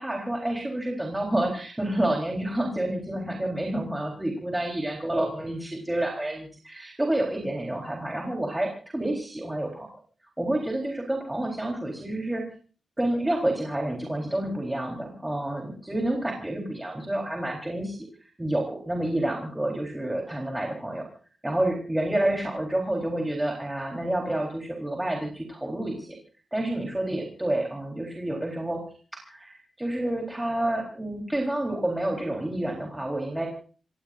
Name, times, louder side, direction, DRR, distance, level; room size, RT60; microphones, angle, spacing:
voice 1, 0.0-9.9 10.4-12.4 13.0-21.0 21.4-26.2 26.5-28.8 29.1-33.5, right 1 dB, 10° right, 0 dB, 3.8 m, -29 dB
27.5 x 18.5 x 2.6 m, 0.39 s
wide cardioid pair, 160°, 0 cm